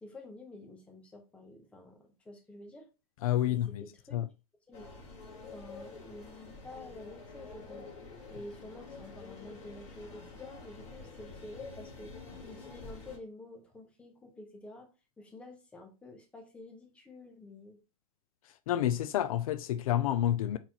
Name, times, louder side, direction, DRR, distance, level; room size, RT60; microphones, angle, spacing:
voice 1, 0.0-2.9 3.4-4.2 4.7-4.9 5.5-7.9 8.3-12.2 12.4-14.9 15.2-17.8, left 2 dB, 5° left, 0.8 m, -49 dB
voice 2, 3.2-3.8 4.1-4.3 18.7-20.6, left 12 dB, 65° left, 0.5 m, -29 dB
sound 1, 4.7-13.2, left 3 dB, 35° left, 2.5 m, -48 dB
4.3 x 4.0 x 2.9 m
supercardioid pair, 160°, 19 cm